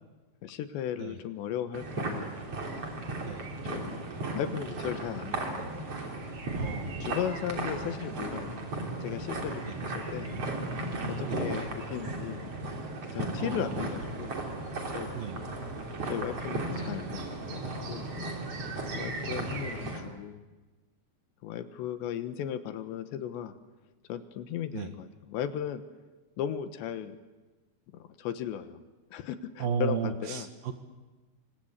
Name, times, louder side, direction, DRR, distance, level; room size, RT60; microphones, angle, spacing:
voice 1, 0.4-2.3 3.6-4.0 4.3-5.8 6.8-8.5 9.0-10.3 11.1-12.4 13.1-14.4 14.9-15.5 16.1-18.0 18.6-20.4 21.4-23.6 24.1-25.8 26.4-27.2 28.0-28.8 29.1-30.5, left 10 dB, 80° left, 9 dB, 3.4 m, -36 dB
sound 1, 1.7-20.0, right 2 dB, 35° right, 4.0 m, -35 dB
voice 2, 6.6-7.1 9.7-9.8 11.2-11.4 13.4-13.7 15.1-15.4 16.7-16.9 19.4-19.6 24.7-24.9 29.6-30.7, right 7 dB, 65° right, 6 dB, 2.9 m, -34 dB
26.0 x 25.5 x 8.2 m, 1.2 s
omnidirectional pair, 5.2 m